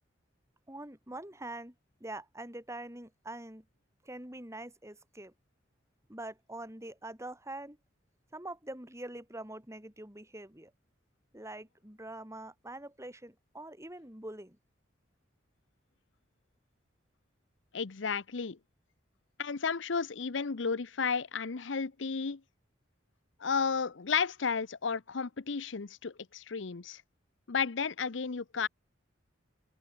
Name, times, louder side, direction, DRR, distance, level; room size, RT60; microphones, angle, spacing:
voice 1, 0.7-1.7 2.0-3.6 4.0-5.3 6.1-7.8 8.3-10.7 11.3-14.6, right 1 dB, 15° right, 4.9 m, -44 dB
voice 2, 17.7-18.6 19.4-22.4 23.4-27.0 27.5-28.7, left 5 dB, 70° left, 0.7 m, -33 dB
head